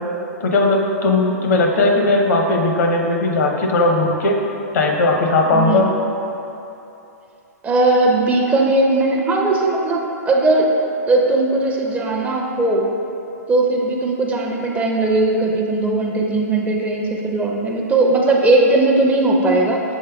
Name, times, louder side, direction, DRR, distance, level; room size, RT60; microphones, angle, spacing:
voice 1, 0.4-4.3 4.7-5.9, left 2 dB, 70° left, 1 dB, 0.7 m, -17 dB
voice 2, 5.5-5.9 7.6-10.7 11.1-12.8 13.5-19.8, right 2 dB, 15° right, 0 dB, 0.4 m, -18 dB
7.2 x 3.1 x 2.3 m, 2.9 s
hypercardioid pair, 120°, 9 cm